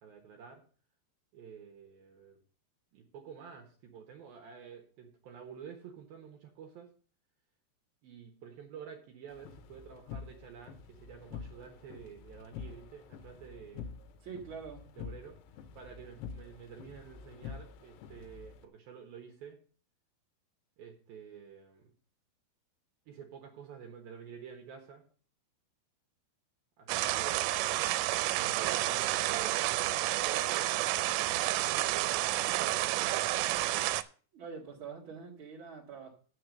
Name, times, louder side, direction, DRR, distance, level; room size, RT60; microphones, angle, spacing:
voice 1, 0.0-0.6 1.3-2.4 2.9-6.9 8.0-14.0 15.0-15.4 15.7-19.6 20.8-21.9 23.1-25.0 26.8-27.7 28.3-33.9, right 7 dB, 65° right, 2 dB, 2.6 m, -50 dB
sound 1, 9.3-18.7, left 6 dB, 80° left, 2.5 m, -47 dB
voice 2, 14.2-14.8 34.3-36.1, right 6 dB, 50° right, -4 dB, 1.6 m, -44 dB
sound 2, 26.9-34.0, right 16 dB, 85° right, 3.1 m, -30 dB
7.7 x 6.6 x 6.5 m, 0.40 s
omnidirectional pair, 5.5 m